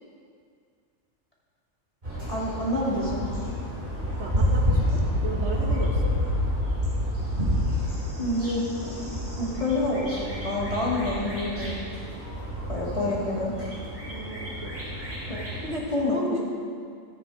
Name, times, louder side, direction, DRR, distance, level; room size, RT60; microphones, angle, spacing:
sound 1, 2.0-15.8, left 1 dB, 40° right, 4.1 m, -29 dB
voice 1, 2.3-3.2 8.2-11.8 12.7-13.5 15.3-15.4 15.9-16.2, left 2 dB, 25° left, -6 dB, 2.6 m, -28 dB
voice 2, 4.2-6.1 12.8-13.5 14.0-14.7 15.6-16.4, right 1 dB, 60° right, -1 dB, 1.7 m, -34 dB
14.0 x 9.7 x 4.9 m, 2.2 s
omnidirectional pair, 1.3 m